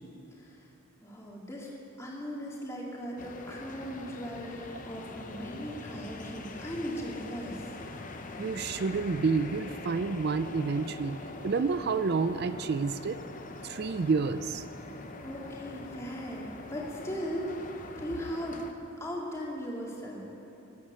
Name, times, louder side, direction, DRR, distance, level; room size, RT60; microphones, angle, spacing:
voice 1, 1.0-7.7 15.2-17.5 18.0-18.6 19.0-20.2, equal, 15° left, -4 dB, 2.2 m, -38 dB
sound 1, 3.2-18.7, left 2 dB, 35° left, 0.7 m, -44 dB
voice 2, 8.4-11.2 11.4-13.2 13.6-14.6, right 4 dB, 50° right, 12 dB, 0.4 m, -29 dB
17.5 x 9.1 x 6.8 m, 3.0 s
head